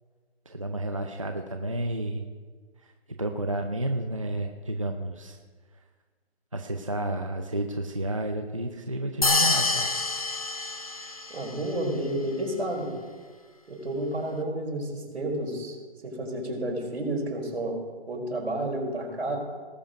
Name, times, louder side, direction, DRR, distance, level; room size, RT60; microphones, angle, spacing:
voice 1, 0.5-2.2 2.8-2.9 3.2-5.4 6.5-9.9, right 1 dB, 30° right, 4 dB, 0.6 m, -31 dB
sound 1, 9.2-11.5, left 3 dB, 35° left, 0.8 m, -26 dB
voice 2, 11.3-12.9 13.7-15.8 16.0-17.8 18.1-19.4, right 1 dB, 75° right, 0 dB, 4.6 m, -31 dB
18.5 x 7.2 x 5.1 m, 1.5 s
hypercardioid pair, 175°, 33 cm